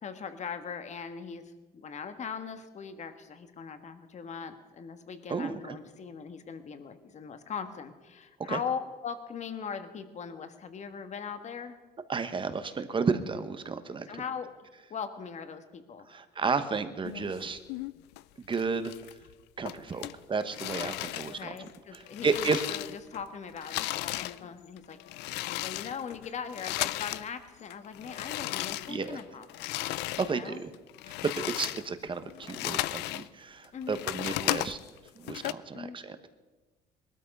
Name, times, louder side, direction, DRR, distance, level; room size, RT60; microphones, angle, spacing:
voice 1, 0.0-11.8 14.1-16.2 19.9-20.0 21.3-25.0 25.6-29.8 30.2-30.6 33.7-34.0 35.7-36.0, left 6 dB, 45° left, 9 dB, 1.5 m, -40 dB
voice 2, 5.3-5.8 8.5-8.6 12.1-14.1 16.1-17.6 18.5-18.9 19.6-21.5 21.9-22.6 28.9-29.2 29.8-30.7 31.2-34.8 35.2-36.3, right 5 dB, 30° right, 11 dB, 1.2 m, -32 dB
sound 1, 17.0-18.2 18.5-19.3 19.7-23.2 23.5-27.3 27.6-30.4 30.7-33.3 33.6-35.5, left 17 dB, 90° left, 0.5 m, -35 dB
19.5 x 13.0 x 5.4 m, 1.3 s
cardioid pair, 110°, 17 cm